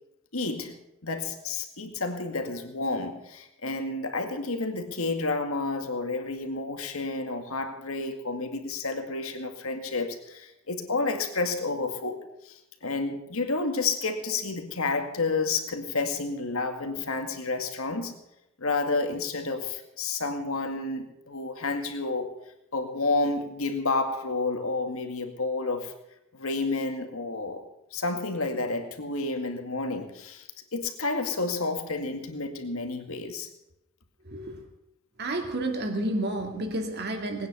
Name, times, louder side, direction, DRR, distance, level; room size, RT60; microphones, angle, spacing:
voice 1, 0.3-18.1 18.6-22.3 22.7-25.9 26.3-27.6 27.9-33.5, left 3 dB, 75° left, 5 dB, 2.1 m, -30 dB
voice 2, 34.2-34.6 35.2-37.5, right 1 dB, 50° right, 4 dB, 2.5 m, -30 dB
20.0 x 9.5 x 6.9 m, 0.87 s
head